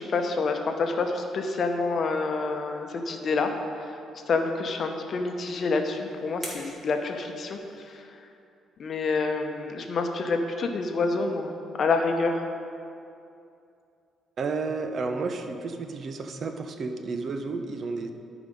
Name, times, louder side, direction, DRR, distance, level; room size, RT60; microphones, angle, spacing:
voice 1, 0.0-3.5 4.3-7.6 7.8-8.1 8.8-11.5 11.8-12.4, left 3 dB, 50° left, 4 dB, 0.8 m, -27 dB
sound 1, 5.3-8.0, equal, 15° right, 2.3 m, -45 dB
voice 2, 14.4-18.1, right 4 dB, 50° right, 7 dB, 0.6 m, -31 dB
11.5 x 5.0 x 5.2 m, 2.6 s
cardioid pair, 115°, 0 cm